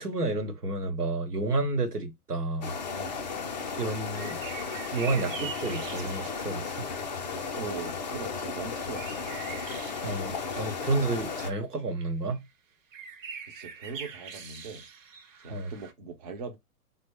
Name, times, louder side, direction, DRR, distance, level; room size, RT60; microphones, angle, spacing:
voice 1, 0.0-2.7 3.8-4.4 4.9-6.7 10.0-12.5 15.5-15.7, right 2 dB, 90° right, 0.9 m, -30 dB
sound 1, 2.6-11.5, left 5 dB, 30° left, 0.4 m, -35 dB
sound 2, 4.1-6.7 9.0-11.0 11.8-11.9 12.3-12.4 12.9-15.9, right 7 dB, 55° right, 0.8 m, -43 dB
voice 2, 7.5-9.4 13.5-14.9 15.4-16.6, right 5 dB, 30° right, 0.4 m, -40 dB
3.3 x 2.0 x 3.4 m
figure-of-eight pair, 115°, 45 cm